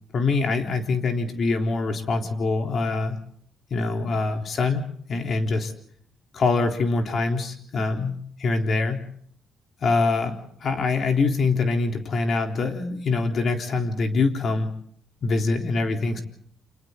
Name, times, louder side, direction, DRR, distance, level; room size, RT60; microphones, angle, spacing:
voice 1, 0.1-3.2 3.7-4.8 5.1-5.7 6.3-8.1 8.4-9.0 9.8-14.7 15.2-16.2, left 3 dB, 55° left, 4 dB, 3.8 m, -24 dB
29.5 x 26.5 x 4.0 m, 0.63 s
cardioid pair, 90°, 0 cm